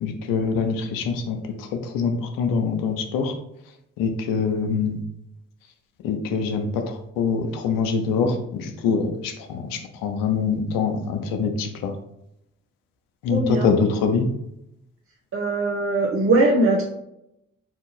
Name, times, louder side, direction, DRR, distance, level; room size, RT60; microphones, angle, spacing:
voice 1, 0.0-3.3 4.0-5.0 6.0-11.9 13.2-14.3, left 5 dB, 85° left, 6 dB, 0.6 m, -24 dB
voice 2, 13.3-13.7 15.3-16.8, right 2 dB, 40° right, -2 dB, 0.9 m, -20 dB
4.4 x 2.7 x 3.9 m, 0.83 s
hypercardioid pair, 40°, 33 cm